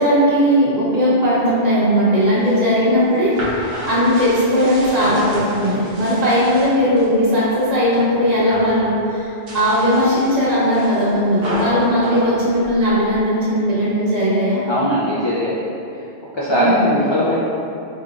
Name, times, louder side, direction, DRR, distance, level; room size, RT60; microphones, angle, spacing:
voice 1, 0.0-14.6 16.5-16.9, equal, 40° right, -9 dB, 1.1 m, -17 dB
sound 1, 2.2-7.1 7.5-8.1 8.3-8.8 9.3-13.2, equal, 65° right, 0.9 m, -31 dB
voice 2, 14.7-15.6 15.9-16.0 16.3-17.4, equal, 50° left, -7 dB, 0.3 m, -20 dB
4.8 x 2.9 x 2.4 m, 2.7 s
omnidirectional pair, 1.1 m